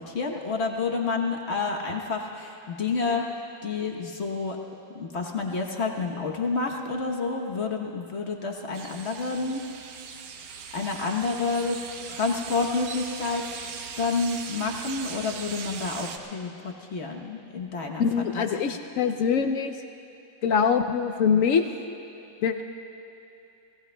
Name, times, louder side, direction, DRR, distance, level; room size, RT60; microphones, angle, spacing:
voice 1, 0.0-3.3 3.6-4.6 4.9-9.6 10.7-11.8 12.1-13.4 14.0-18.7, left 4 dB, 45° left, 1 dB, 1.1 m, -29 dB
sound 1, 8.7-16.2, right 6 dB, 60° right, 1.2 m, -39 dB
voice 2, 18.0-19.8 20.4-21.7 22.4-22.6, left 6 dB, 70° left, 7 dB, 0.7 m, -23 dB
28.5 x 17.5 x 2.2 m, 2.7 s
omnidirectional pair, 1.9 m